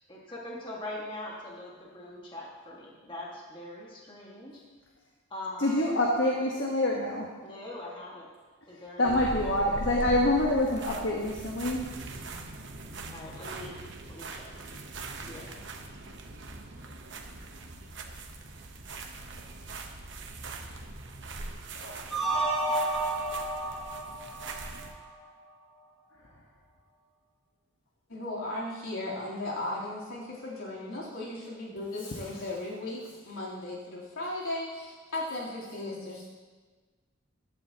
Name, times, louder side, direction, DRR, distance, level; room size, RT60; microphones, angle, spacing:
voice 1, 0.1-4.6 5.3-5.7 7.4-8.3 8.7-9.5 13.1-13.8 14.1-14.7 15.2-15.6, left 1 dB, 25° left, -4 dB, 1.9 m, -42 dB
voice 2, 5.6-7.3 9.0-11.8 21.8-22.9, left 1 dB, 65° left, -2 dB, 1.4 m, -27 dB
sound 1, 9.0-24.9, right 2 dB, 60° right, 1.1 m, -41 dB
sound 2, 22.1-25.2, right 2 dB, ahead, 2.3 m, -31 dB
voice 3, 28.1-36.2, left 2 dB, 90° left, -6 dB, 3.6 m, -36 dB
15.0 x 12.0 x 3.0 m, 1.4 s
head